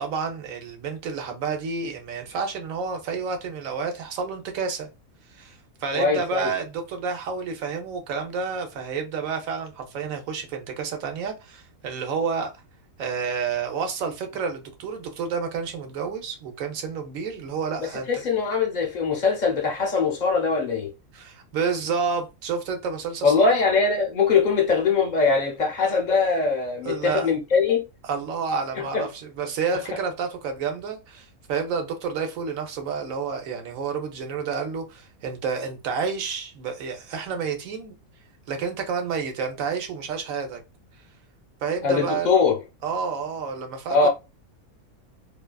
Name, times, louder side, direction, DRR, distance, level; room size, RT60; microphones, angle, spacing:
voice 1, 0.0-4.9 5.3-12.5 13.0-18.3 21.1-23.6 26.8-27.3 28.0-38.0 38.5-40.6 41.6-42.3 42.8-44.1, right 5 dB, 70° right, 1.0 m, -30 dB
voice 2, 5.9-6.5 18.1-20.9 23.2-27.8 28.8-29.1 41.8-42.6 43.9-44.1, left 4 dB, 45° left, 0.6 m, -22 dB
2.7 x 2.3 x 2.2 m
omnidirectional pair, 1.6 m